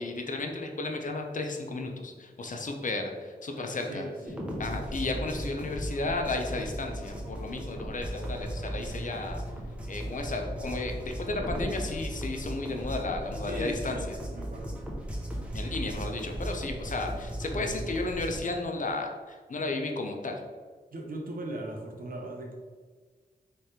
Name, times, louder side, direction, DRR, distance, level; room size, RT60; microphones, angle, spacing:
voice 1, 0.0-4.0 4.6-9.4 9.9-14.2 15.5-20.4, left 2 dB, 50° left, 3 dB, 0.7 m, -33 dB
voice 2, 3.5-4.4 9.0-9.2 13.4-14.1 14.3-14.7 17.5-17.7 20.9-22.6, right 1 dB, 60° right, 1 dB, 0.9 m, -39 dB
sound 1, 4.3-18.4, right 1 dB, 5° right, 1.0 m, -36 dB
3.4 x 3.3 x 4.2 m, 1.5 s
cardioid pair, 50°, 17 cm